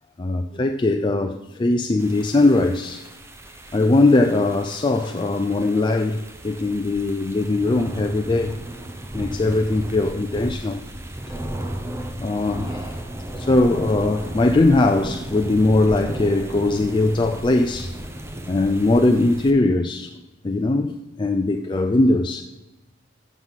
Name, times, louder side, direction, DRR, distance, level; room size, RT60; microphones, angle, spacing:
voice 1, 0.2-3.0 3.7-8.6 9.1-10.8 12.2-12.9 13.4-17.9 18.5-20.9 21.2-22.4, left 2 dB, 25° left, 0.4 m, -20 dB
sound 1, 2.0-19.5, right 1 dB, 15° right, 0.8 m, -35 dB
14.5 x 6.1 x 4.0 m
head